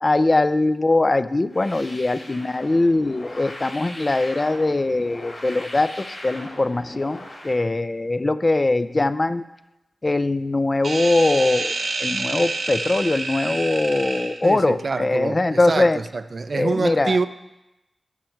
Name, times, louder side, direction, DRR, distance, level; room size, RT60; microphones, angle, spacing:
voice 1, 0.0-9.4 10.0-11.7 12.0-16.0 16.5-17.2, left 2 dB, 35° left, 14 dB, 0.5 m, -21 dB
sound 1, 1.5-7.6, left 1 dB, 60° left, 3.7 m, -39 dB
sound 2, 10.8-14.4, right 3 dB, 90° right, 1.1 m, -28 dB
voice 2, 14.4-17.3, right 4 dB, 60° right, 12 dB, 0.5 m, -26 dB
14.0 x 5.8 x 4.6 m, 0.95 s
cardioid pair, 60°, 0 cm